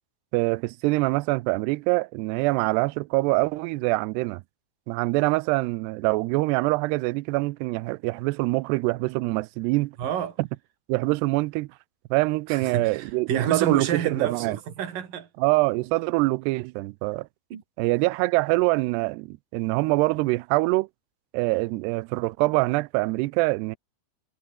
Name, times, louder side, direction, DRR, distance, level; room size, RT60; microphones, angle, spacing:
voice 1, 0.3-4.4 4.9-9.9 10.4-10.5 10.9-11.7 12.1-14.6 15.4-17.3 17.8-20.9 21.3-23.8, right 22 dB, 85° right, 2.4 m, -24 dB
voice 2, 10.0-10.4 12.5-15.3 17.5-17.6, right 8 dB, 50° right, 4.4 m, -29 dB
omnidirectional pair, 5.4 m